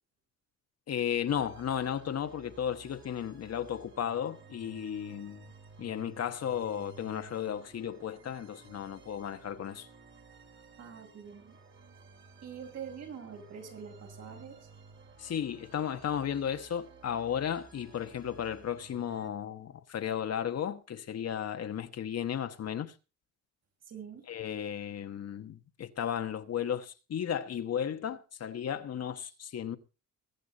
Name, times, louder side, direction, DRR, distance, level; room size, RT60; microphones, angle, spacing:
voice 1, 0.9-5.5 5.8-9.9 15.2-22.9 24.3-29.8, left 9 dB, 55° left, 1.3 m, -34 dB
sound 1, 1.3-19.3, right 4 dB, 40° right, 3.1 m, -55 dB
voice 2, 10.8-11.6 12.4-14.6 23.9-24.3, right 7 dB, 60° right, 5.9 m, -45 dB
22.0 x 8.3 x 4.0 m
cardioid pair, 90°, 30 cm